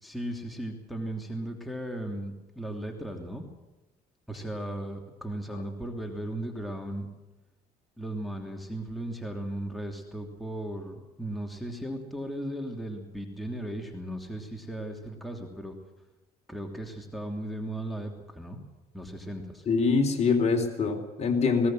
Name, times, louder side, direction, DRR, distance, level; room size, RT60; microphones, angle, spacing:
voice 1, 0.0-3.5 4.3-7.1 8.0-15.8 16.5-18.6 18.9-19.7, right 1 dB, ahead, 2 dB, 3.0 m, -36 dB
voice 2, 19.7-21.7, left 4 dB, 40° left, 4 dB, 3.9 m, -24 dB
19.0 x 18.5 x 7.8 m, 1.0 s
cardioid pair, 110°, 17 cm